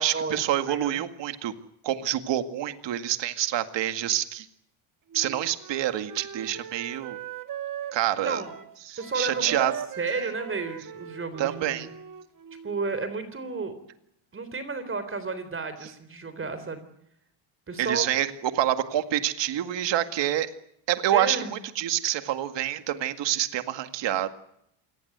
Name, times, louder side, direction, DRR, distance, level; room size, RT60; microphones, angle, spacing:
voice 1, 0.0-1.5 1.8-4.5 5.1-7.2 7.9-8.4 8.8-9.7 11.4-11.9 17.8-18.3 18.5-20.5 20.9-24.3, right 12 dB, 60° right, 9 dB, 2.1 m, -27 dB
voice 2, 0.6-1.0 8.2-8.5 9.0-9.7 10.0-11.9 12.6-13.7 14.3-16.9 17.7-18.1 21.1-21.5, right 4 dB, 25° right, 11 dB, 3.8 m, -32 dB
Wind instrument woodwind instrument, 5.1-12.9, right 9 dB, 40° right, 1.8 m, -40 dB
27.5 x 19.0 x 8.1 m, 0.75 s
cardioid pair, 125°, 50 cm